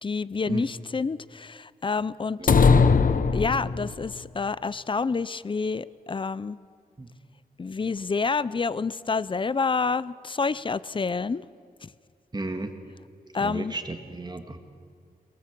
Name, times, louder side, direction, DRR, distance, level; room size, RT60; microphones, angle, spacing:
voice 1, 0.0-2.6 3.3-6.6 7.6-11.4 11.8-11.9 13.3-13.7, left 4 dB, 30° left, 18 dB, 0.5 m, -28 dB
sound 1, 2.5-4.1, left 5 dB, 60° left, 0.8 m, -19 dB
voice 2, 12.3-12.7 13.4-14.6, right 2 dB, 25° right, 5 dB, 2.0 m, -34 dB
22.5 x 20.0 x 7.5 m, 2.2 s
wide cardioid pair, 100°, 16 cm